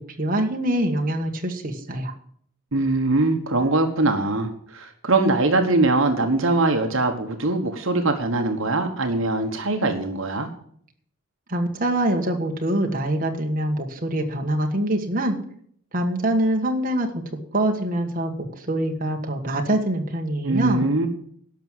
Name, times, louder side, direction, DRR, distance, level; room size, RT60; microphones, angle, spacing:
voice 1, 0.0-2.1 11.5-15.4 15.9-17.2 17.5-20.9, right 1 dB, 40° right, 2 dB, 1.5 m, -24 dB
voice 2, 2.7-10.5 20.4-21.1, right 2 dB, 65° right, 5 dB, 1.3 m, -22 dB
12.0 x 6.2 x 9.0 m, 0.63 s
head